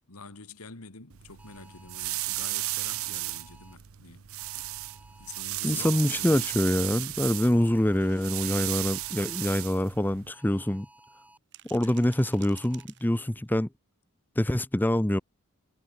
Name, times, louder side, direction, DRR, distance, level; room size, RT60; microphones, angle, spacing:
voice 1, 0.1-4.3 5.2-6.4 11.8-12.0, left 4 dB, 90° left, 2.4 m, -46 dB
sound 1, 1.1-10.3, right 17 dB, 70° right, 0.7 m, -35 dB
sound 2, 1.4-3.8 4.4-5.4 5.9-6.9 7.3-9.7 10.3-11.4 11.8-12.8, right 1 dB, 5° right, 5.5 m, -56 dB
voice 2, 5.6-10.9 11.7-13.7 14.4-15.2, left 1 dB, 10° left, 0.7 m, -25 dB
sound 3, 10.3-10.4 11.3-13.5, right 13 dB, 55° right, 2.9 m, -53 dB
head